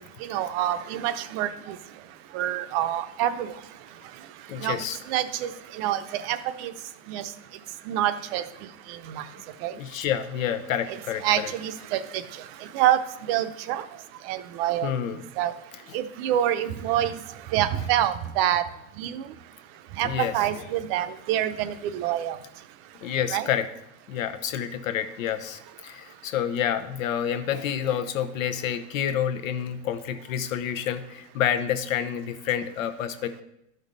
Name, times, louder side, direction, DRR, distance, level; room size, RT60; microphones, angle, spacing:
voice 1, 0.2-1.8 2.3-3.5 4.6-4.8 5.1-5.5 5.8-6.7 7.1-7.3 7.9-8.4 9.1-9.2 9.6-9.7 11.2-12.0 12.7-13.0 13.3-13.8 14.3-14.9 15.4-15.5 15.9-17.1 17.5-18.6 19.0-19.2 20.0-22.4 23.3-23.5, right 12 dB, 50° right, 12 dB, 0.6 m, -26 dB
voice 2, 4.5-5.0 9.7-11.5 14.8-15.2 20.0-20.5 23.0-23.7 24.1-33.4, left 9 dB, 90° left, 9 dB, 0.9 m, -28 dB
12.0 x 5.3 x 4.0 m, 0.84 s
supercardioid pair, 145°, 39 cm